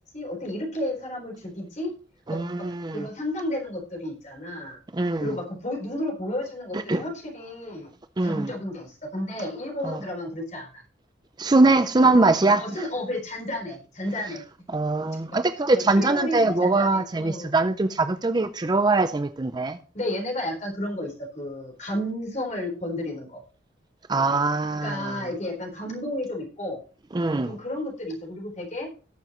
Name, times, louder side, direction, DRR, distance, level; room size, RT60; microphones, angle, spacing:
voice 1, 0.1-1.9 2.3-2.6 2.9-4.8 5.2-7.9 8.2-10.8 12.6-14.4 15.7-17.5 19.9-23.4 24.8-26.8 27.4-28.9, left 1 dB, 40° left, 4.0 m, -32 dB
voice 2, 2.3-3.1 4.9-5.4 6.9-7.0 8.2-8.5 9.8-10.0 11.4-12.6 14.7-19.8 24.1-25.3 27.1-27.6, right 2 dB, 20° right, 0.4 m, -22 dB
18.5 x 7.0 x 3.0 m
head